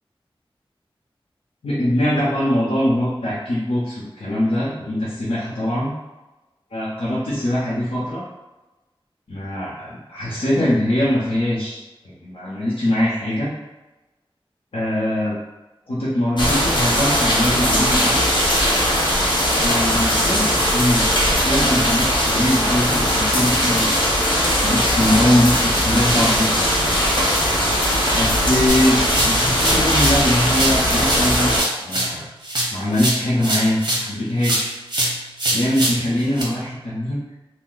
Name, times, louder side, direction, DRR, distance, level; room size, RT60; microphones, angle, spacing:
voice 1, 1.6-5.9 6.7-8.2 9.3-13.5 14.7-15.4 15.9-18.2 19.6-21.0 21.3-24.1 24.6-26.6 28.1-31.5 31.8-32.2 32.7-34.7 35.5-37.2, left 1 dB, 80° left, -9 dB, 0.8 m, -22 dB
sound 1, 16.4-31.6, equal, 50° left, 1.0 m, -19 dB
sound 2, 28.7-30.2 30.5-34.1 34.4-36.4, right 1 dB, 50° right, 0.8 m, -24 dB
2.7 x 2.1 x 3.9 m, 1.1 s
wide cardioid pair, 65°, 10 cm